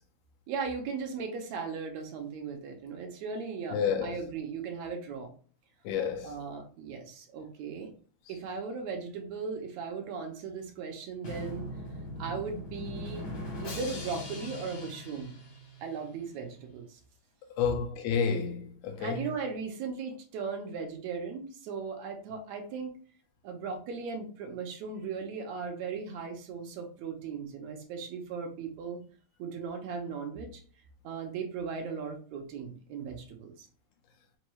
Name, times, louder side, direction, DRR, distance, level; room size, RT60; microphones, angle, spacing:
voice 1, 0.5-5.3 6.2-7.9 8.3-11.7 12.2-13.3 13.6-15.3 15.8-17.0 19.0-23.0 23.4-29.0 29.4-30.6 31.0-33.7, right 5 dB, 75° right, 2.0 m, -37 dB
voice 2, 3.7-4.2 5.8-6.3 17.6-19.3, left 6 dB, 85° left, 2.1 m, -30 dB
Drum, 11.2-16.1, left 1 dB, 70° left, 0.9 m, -40 dB
5.3 x 2.5 x 3.1 m
omnidirectional pair, 3.4 m